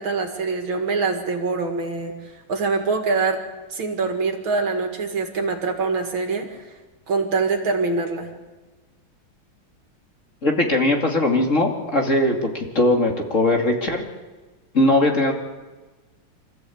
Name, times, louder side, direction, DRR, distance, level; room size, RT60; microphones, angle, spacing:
voice 1, 0.0-2.2 2.5-3.4 3.7-6.7 7.1-8.3, right 4 dB, 65° right, 5 dB, 2.9 m, -24 dB
voice 2, 10.4-14.0 14.7-15.3, left 1 dB, 35° left, 2 dB, 2.9 m, -20 dB
25.5 x 15.0 x 8.7 m, 1.3 s
omnidirectional pair, 2.3 m